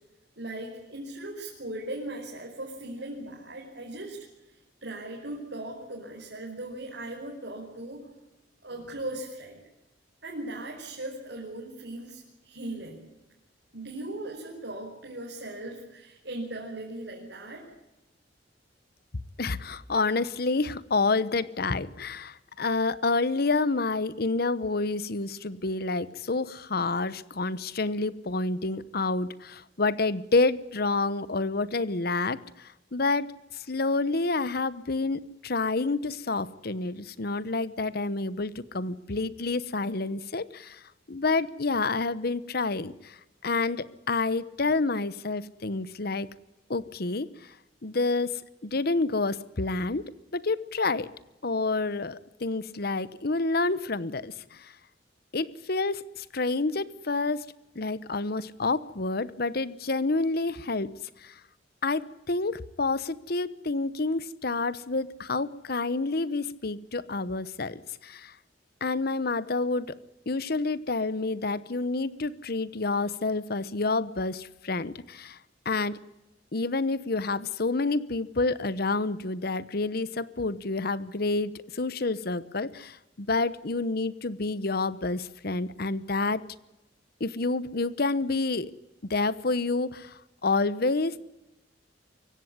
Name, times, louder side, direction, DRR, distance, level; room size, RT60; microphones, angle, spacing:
voice 1, 0.4-4.2 4.8-8.1 8.6-9.6 10.2-13.1 13.7-17.6, right 1 dB, 65° right, -2 dB, 5.0 m, -38 dB
voice 2, 19.4-40.8 41.1-43.2 43.4-46.3 46.7-47.5 47.8-50.0 50.3-51.1 51.4-54.7 55.3-57.4 57.7-60.9 61.2-61.4 61.8-68.4 68.8-70.0 70.3-75.4 75.6-76.0 76.5-86.4 87.2-88.7 89.1-91.2, left 3 dB, 55° left, 17 dB, 1.0 m, -28 dB
24.5 x 16.0 x 9.7 m, 0.96 s
head